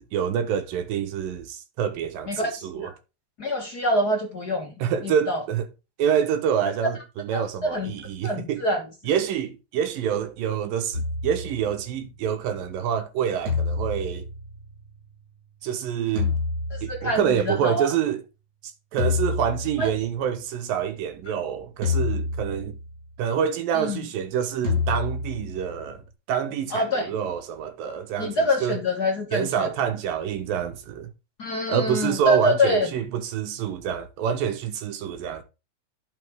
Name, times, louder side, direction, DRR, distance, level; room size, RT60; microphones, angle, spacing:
voice 1, 0.0-2.3 2.6-2.9 4.8-5.7 6.0-8.6 9.1-14.3 15.6-16.3 16.8-18.2 18.9-22.8 23.2-26.0 26.3-28.8 29.3-31.1 31.7-35.4, right 8 dB, 80° right, 3.0 m, -27 dB
voice 2, 2.3-2.9 3.4-4.7 5.0-5.4 7.3-8.0 8.2-8.8 16.7-17.9 19.8-19.9 21.3-21.4 23.7-24.0 26.7-27.1 28.2-29.7 31.4-32.9, left 1 dB, 40° left, 1.5 m, -25 dB
sound 1, 10.9-12.2 13.5-15.2 16.2-17.5 19.0-20.3 21.8-23.0 24.6-26.1, left 4 dB, 30° right, 6.4 m, -28 dB
11.0 x 6.2 x 3.6 m
omnidirectional pair, 4.0 m